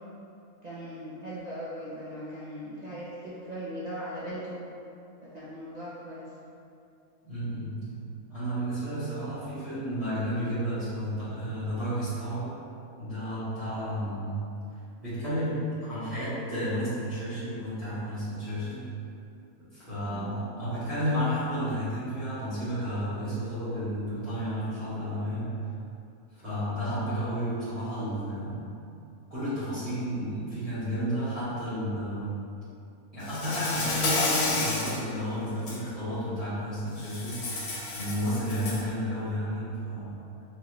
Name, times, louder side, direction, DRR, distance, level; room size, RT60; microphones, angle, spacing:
voice 1, 0.6-4.6 5.2-6.3 20.1-20.4, equal, 70° right, -9 dB, 0.4 m, -39 dB
voice 2, 7.2-8.0 8.3-12.5 13.0-14.4 15.0-18.9 19.7-25.5 26.4-28.7 29.3-32.4 33.1-37.4 37.9-40.2, equal, 25° right, -15 dB, 1.6 m, -32 dB
Insect, 33.3-35.0 35.5-35.8 37.0-38.9, left 2 dB, 80° left, 1.3 m, -30 dB
4.8 x 3.1 x 3.0 m, 2.6 s
omnidirectional pair, 1.5 m